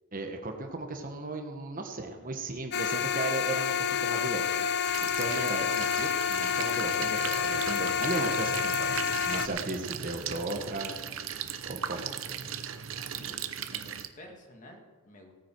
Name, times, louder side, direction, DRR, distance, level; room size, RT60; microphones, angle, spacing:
voice 1, 0.1-3.7 4.0-4.6 5.0-9.0 9.2-10.9 11.7-12.1, right 2 dB, 45° right, 4 dB, 1.4 m, -36 dB
sound 1, 2.7-9.5, left 7 dB, 55° left, 0.7 m, -29 dB
sound 2, 4.9-14.1, right 8 dB, 80° right, 0.8 m, -38 dB
voice 2, 12.1-15.3, left 1 dB, 40° left, 2 dB, 2.1 m, -53 dB
17.0 x 9.5 x 4.6 m, 1.4 s
head